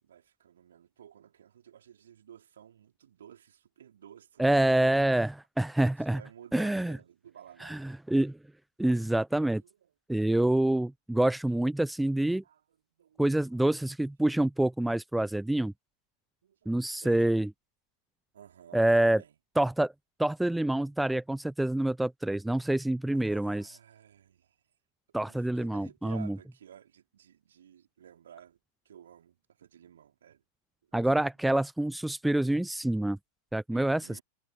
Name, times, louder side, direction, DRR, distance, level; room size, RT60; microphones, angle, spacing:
voice 1, 0.0-4.4 6.0-7.9 9.6-9.9 12.4-13.2 13.5-13.7 16.4-17.3 18.3-19.4 23.1-24.6 25.1-28.6 28.8-30.4 31.2-31.3 33.7-34.2, right 9 dB, 65° right, 4.4 m, -53 dB
voice 2, 4.4-6.2 6.5-7.0 7.6-8.4 8.8-9.6 10.1-12.4 13.2-15.7 16.7-17.5 18.7-19.2 19.6-19.9 20.2-23.8 25.1-26.4 30.9-33.2 33.5-34.2, right 1 dB, 5° right, 0.6 m, -27 dB
figure-of-eight pair, 90°, 0 cm